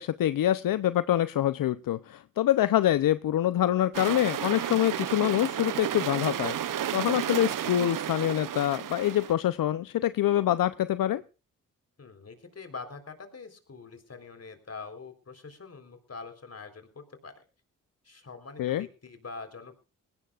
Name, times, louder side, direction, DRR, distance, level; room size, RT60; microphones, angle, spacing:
voice 1, 0.0-11.2 18.6-18.9, left 12 dB, 75° left, 14 dB, 0.6 m, -25 dB
sound 1, 3.9-9.3, right 10 dB, 70° right, 0.8 m, -32 dB
voice 2, 12.0-17.4 18.0-19.8, left 4 dB, 45° left, 8 dB, 3.9 m, -44 dB
20.5 x 17.0 x 2.4 m, 0.33 s
cardioid pair, 60°, 34 cm